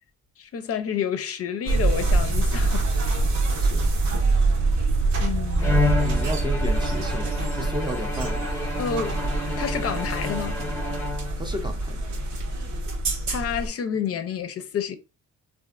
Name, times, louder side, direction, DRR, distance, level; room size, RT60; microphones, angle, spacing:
voice 1, 0.4-2.9 5.2-5.9 7.6-7.7 8.8-10.6 13.3-15.0, left 7 dB, 50° left, 0.5 m, -30 dB
sound 1, 1.7-13.7, right 2 dB, 70° right, 0.8 m, -25 dB
Bowed string instrument, 5.6-11.6, left 3 dB, 10° left, 0.8 m, -30 dB
voice 2, 6.0-8.5 11.4-12.1, right 1 dB, 15° right, 0.4 m, -33 dB
3.2 x 2.5 x 2.4 m
cardioid pair, 90°, 30 cm